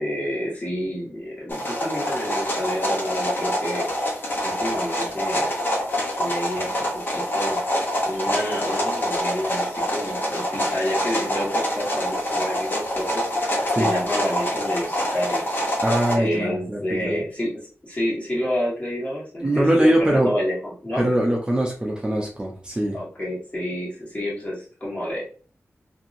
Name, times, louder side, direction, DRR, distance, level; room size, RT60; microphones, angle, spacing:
voice 1, 0.0-3.9 4.1-5.5 6.2-7.6 8.0-15.6 16.1-17.5 17.8-21.1 22.9-25.2, equal, 30° left, -6 dB, 1.5 m, -29 dB
sound 1, 1.5-16.2, equal, 45° left, 0.9 m, -26 dB
voice 2, 15.8-17.2 19.4-20.3 21.0-23.0, right 1 dB, 20° right, -1 dB, 0.6 m, -22 dB
2.9 x 2.7 x 2.5 m, 0.41 s
wide cardioid pair, 115°, 5 cm